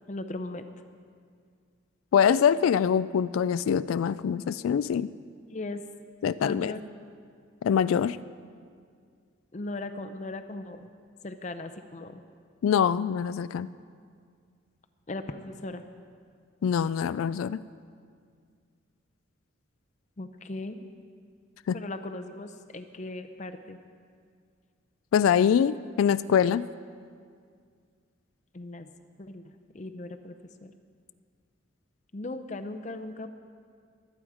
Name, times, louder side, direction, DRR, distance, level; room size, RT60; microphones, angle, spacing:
voice 1, 0.1-0.7 5.5-5.8 6.4-6.8 9.5-10.9 11.2-12.2 15.1-15.8 20.2-20.9 21.7-23.8 28.5-28.9 29.2-29.4 29.7-30.4 30.6-30.7 32.1-33.3, left 2 dB, 35° left, 8 dB, 0.6 m, -38 dB
voice 2, 2.1-5.1 6.2-6.7 7.6-8.2 12.6-13.7 16.6-17.6 21.7-21.8 25.1-26.7, left 8 dB, 90° left, 15 dB, 0.3 m, -24 dB
22.5 x 8.8 x 4.9 m, 2.1 s
head